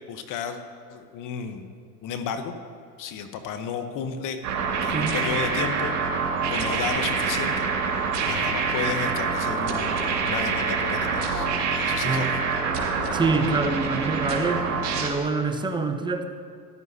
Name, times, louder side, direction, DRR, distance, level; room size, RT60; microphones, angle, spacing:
voice 1, 0.1-0.6 0.9-1.7 2.0-2.5 3.0-4.4 4.8-5.9 6.5-11.5 11.8-12.5, left 7 dB, 40° left, 7 dB, 1.0 m, -33 dB
sound 1, 4.4-15.1, right 5 dB, 65° right, 2.5 m, -26 dB
voice 2, 4.9-5.4 12.0-12.4 13.1-14.7 15.0-16.3, right 3 dB, 10° right, 6 dB, 0.8 m, -26 dB
15.0 x 11.0 x 2.8 m, 2.4 s
hypercardioid pair, 95°, 46 cm